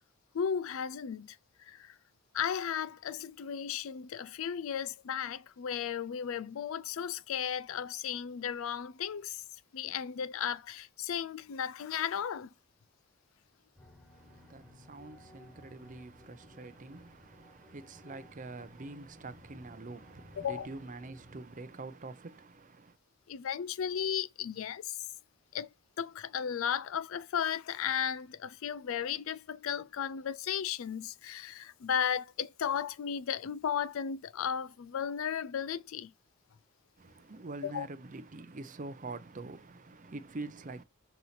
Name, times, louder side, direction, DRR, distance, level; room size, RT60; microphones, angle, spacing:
voice 1, 0.3-2.0 2.3-9.4 9.7-12.5 20.4-20.7 23.3-25.0 25.5-25.7 26.0-36.1 37.6-37.9, left 8 dB, 70° left, 0.4 m, -35 dB
sound 1, 13.8-21.4, left 1 dB, 5° left, 1.6 m, -57 dB
voice 2, 14.1-23.0 37.0-40.8, right 2 dB, 40° right, 0.7 m, -45 dB
4.6 x 4.2 x 5.7 m
head